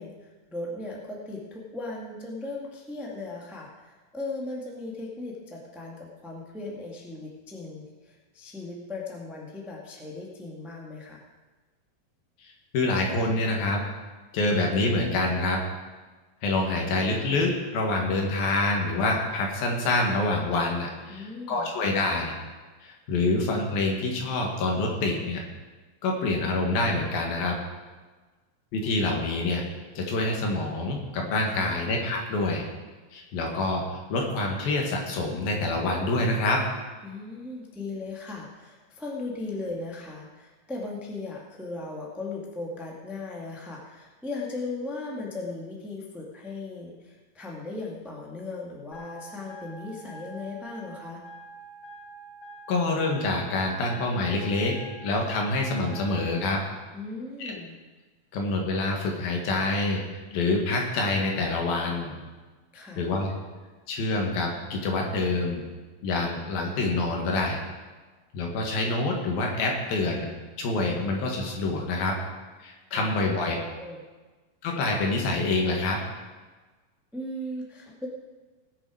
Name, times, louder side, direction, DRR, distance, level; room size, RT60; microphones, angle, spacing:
voice 1, 0.0-11.2 21.1-21.7 31.6-31.8 37.0-51.3 56.9-57.7 62.7-63.0 72.9-73.1 73.8-74.0 77.1-78.1, left 2 dB, ahead, -2 dB, 0.7 m, -37 dB
voice 2, 12.7-13.8 14.3-15.6 16.4-22.3 22.8-25.4 26.0-27.6 28.7-29.6 30.0-32.6 33.1-33.8 34.1-36.6 52.7-54.8 55.0-56.6 57.5-57.6 58.3-60.0 60.3-62.1 63.0-63.3 63.9-65.7 66.0-67.6 68.3-70.3 70.6-72.2 72.6-73.6 74.6-76.0, left 2 dB, 75° left, 0 dB, 3.6 m, -26 dB
sound 1, 48.9-56.5, right 3 dB, 45° left, 3.1 m, -46 dB
19.5 x 7.0 x 5.0 m, 1.3 s
omnidirectional pair, 4.2 m